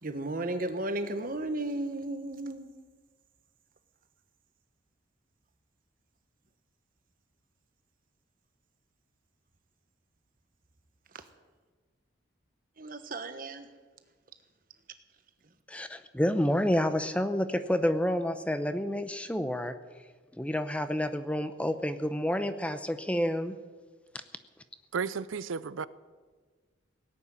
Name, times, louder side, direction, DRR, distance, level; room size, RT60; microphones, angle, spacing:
voice 1, 0.0-2.7 12.8-13.7, right 2 dB, 45° right, 9 dB, 1.2 m, -34 dB
voice 2, 15.7-19.7 20.4-23.6, equal, 5° left, 10 dB, 0.6 m, -29 dB
voice 3, 24.9-25.9, right 6 dB, 90° right, 16 dB, 0.5 m, -33 dB
17.5 x 8.5 x 9.7 m, 1.4 s
head